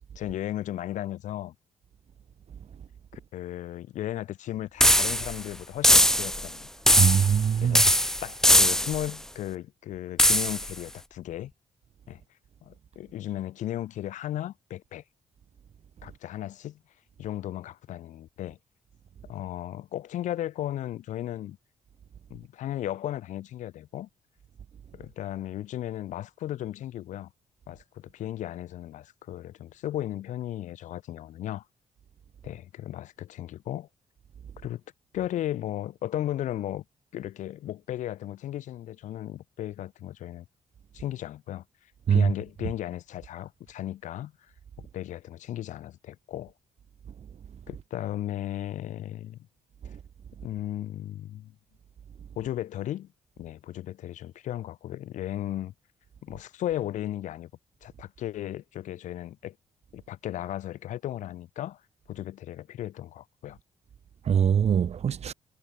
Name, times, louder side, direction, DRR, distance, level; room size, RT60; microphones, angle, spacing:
voice 1, 0.2-1.5 3.1-6.7 7.0-7.1 7.6-7.9 8.2-11.5 12.1-12.2 12.6-15.0 16.0-16.8 17.2-18.6 19.2-21.6 22.3-24.1 24.9-27.3 27.7-31.6 32.4-33.9 34.6-34.8 35.1-36.8 37.1-40.4 40.9-41.6 42.1-44.3 44.8-46.5 47.7-49.4 50.4-51.5 52.4-53.1 53.4-55.7 56.2-57.5 57.8-59.5 59.9-61.8 62.1-63.6, left 12 dB, 90° left, 7.8 m, -35 dB
sound 1, 4.8-5.4 5.8-6.5 6.9-7.4 7.7-9.1 10.2-10.7, equal, 5° left, 3.9 m, -21 dB
voice 2, 7.0-7.8 42.1-42.3 64.3-65.3, right 8 dB, 60° right, 3.9 m, -22 dB
cardioid pair, 90°, 12 cm